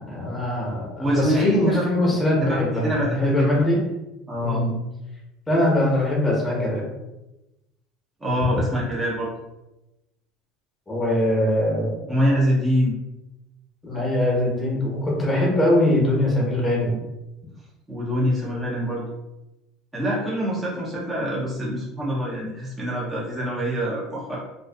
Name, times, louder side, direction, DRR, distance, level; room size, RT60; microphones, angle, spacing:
voice 1, 0.1-3.8 4.4-4.7 5.5-6.8 10.9-12.1 13.8-17.0, left 1 dB, 10° left, -3 dB, 0.8 m, -22 dB
voice 2, 1.0-1.9 2.4-3.6 4.3-4.6 8.2-9.3 12.1-12.9 17.9-19.0 19.9-24.4, equal, 15° right, -6 dB, 0.6 m, -24 dB
2.4 x 2.3 x 2.3 m, 0.97 s
supercardioid pair, 130°, 0 cm